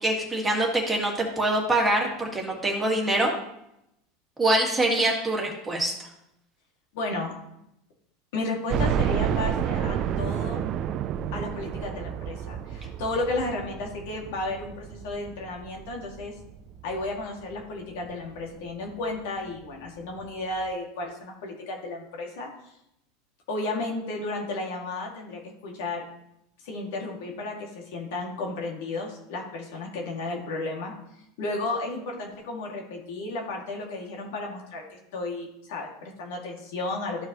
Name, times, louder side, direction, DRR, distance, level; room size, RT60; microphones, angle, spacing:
voice 1, 0.0-3.3 4.4-5.9, right 1 dB, 10° right, -1 dB, 1.9 m, -24 dB
voice 2, 6.9-7.4 8.3-10.7 11.3-16.3 16.8-22.5 23.5-26.0 26.6-30.9 31.4-37.3, left 2 dB, 75° left, 0 dB, 2.1 m, -33 dB
sound 1, 8.7-17.6 18.1-18.2 18.6-18.7 19.8-19.9 20.2-20.3, right 9 dB, 45° right, 0.4 m, -30 dB
14.0 x 4.7 x 3.0 m, 0.81 s
supercardioid pair, 125°, 0 cm